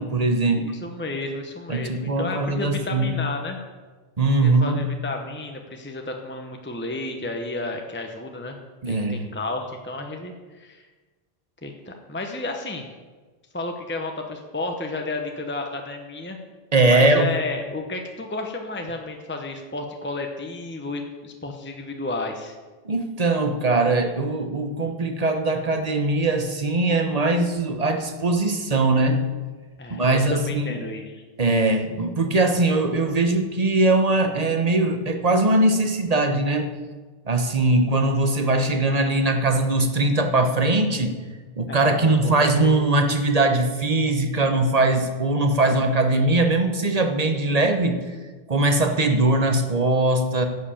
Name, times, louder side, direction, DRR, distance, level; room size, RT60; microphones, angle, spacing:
voice 1, 0.0-0.7 1.7-3.2 4.2-4.8 8.8-9.3 16.7-17.3 22.8-29.2 29.9-30.7 31.4-36.7 37.3-41.1 41.6-48.0 48.5-50.5, right 2 dB, 40° right, 6 dB, 1.1 m, -21 dB
voice 2, 0.6-3.6 4.4-8.6 8.8-10.8 11.6-12.9 13.5-16.4 16.9-22.6 29.8-31.2 41.7-42.8, left 2 dB, 10° left, 3 dB, 0.9 m, -32 dB
10.5 x 7.7 x 7.0 m, 1.3 s
omnidirectional pair, 1.0 m